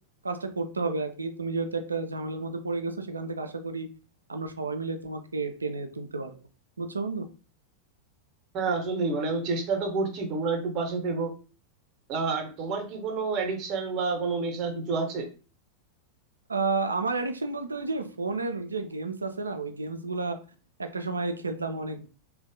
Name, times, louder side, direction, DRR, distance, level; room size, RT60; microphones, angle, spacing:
voice 1, 0.2-3.9 4.3-6.3 6.8-7.2 16.5-20.4 20.8-22.1, right 3 dB, 75° right, 7 dB, 0.4 m, -31 dB
voice 2, 8.5-11.3 12.1-15.3, right 4 dB, 35° right, 4 dB, 0.7 m, -29 dB
3.3 x 2.2 x 2.6 m, 0.36 s
figure-of-eight pair, 90°, 0 cm